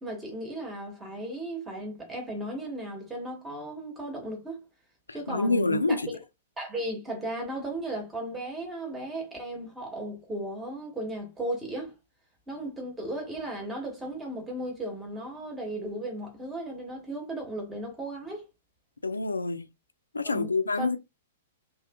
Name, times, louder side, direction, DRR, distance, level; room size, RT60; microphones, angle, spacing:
voice 1, 0.0-4.6 5.1-6.0 6.6-11.9 12.5-18.5 20.2-20.9, right 1 dB, 10° right, 1.0 m, -36 dB
voice 2, 5.3-6.1 19.0-19.6 20.1-21.0, left 3 dB, 75° left, 0.3 m, -26 dB
2.7 x 2.3 x 2.2 m
figure-of-eight pair, 105°, 0 cm